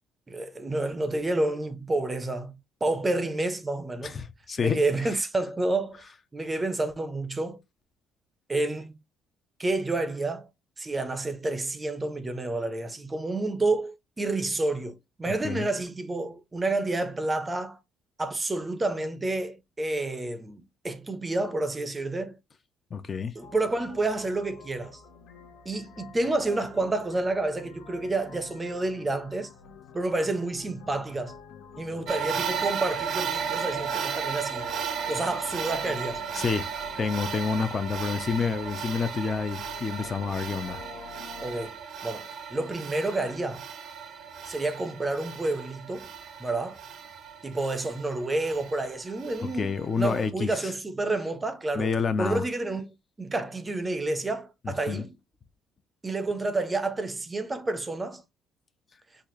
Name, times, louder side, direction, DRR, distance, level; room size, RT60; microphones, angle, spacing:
voice 1, 0.3-4.2 4.6-6.0 6.3-7.6 8.5-9.0 9.6-10.5 10.8-17.8 18.2-22.4 23.4-25.0 25.7-29.5 29.9-31.4 31.8-34.7 35.1-36.2 41.4-43.7 44.5-46.1 46.4-46.8 47.4-49.7 50.0-51.9 52.2-55.1 56.0-58.2, right 2 dB, 20° right, 0.5 m, -29 dB
voice 2, 4.0-5.2 15.4-15.7 22.9-23.3 36.3-36.7 37.0-40.8 49.4-50.7 51.7-52.4 54.6-55.0, left 5 dB, 30° left, 0.4 m, -29 dB
sound 1, 23.4-41.7, left 6 dB, 80° left, 0.9 m, -48 dB
sound 2, 32.1-50.3, right 7 dB, 55° right, 0.6 m, -35 dB
4.0 x 2.3 x 3.0 m
cardioid pair, 120°, 0 cm